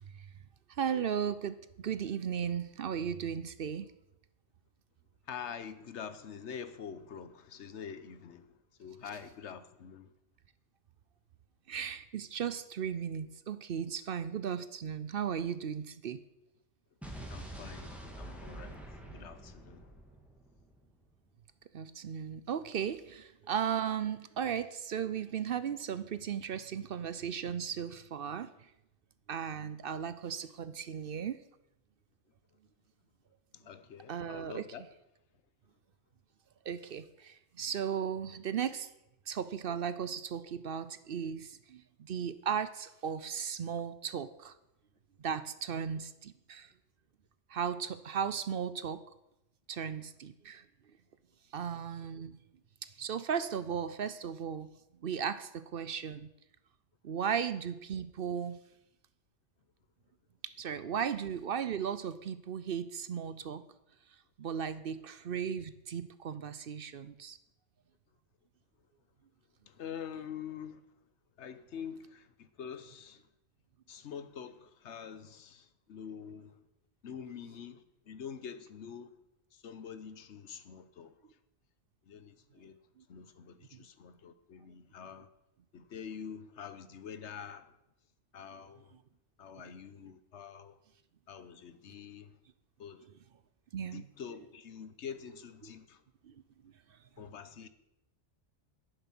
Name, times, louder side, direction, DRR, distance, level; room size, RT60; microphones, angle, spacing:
voice 1, 0.7-3.9 11.7-16.2 21.7-28.5 29.3-31.4 34.1-34.6 36.6-38.9 39.3-44.5 45.2-46.7 47.5-49.0 49.7-50.6 51.5-52.4 53.0-54.7 55.0-56.3 57.0-58.6 60.4-63.6 64.4-67.4 83.0-83.1 89.5-89.6 93.7-94.0 96.2-96.3 96.6-96.7, right 8 dB, 60° right, 0.8 m, -36 dB
voice 2, 5.3-8.5 8.8-10.1 17.3-19.9 33.5-34.8 69.7-70.8 71.4-73.2 73.9-76.6 77.0-79.1 79.5-81.1 82.1-82.8 83.1-85.3 85.7-87.7 88.3-88.9 89.4-90.8 91.3-92.4 92.8-93.1 93.9-96.0 97.2-97.7, left 7 dB, 75° left, 1.2 m, -46 dB
Explosion, 17.0-21.1, right 1 dB, ahead, 1.9 m, -46 dB
10.5 x 10.5 x 6.0 m
omnidirectional pair, 1.2 m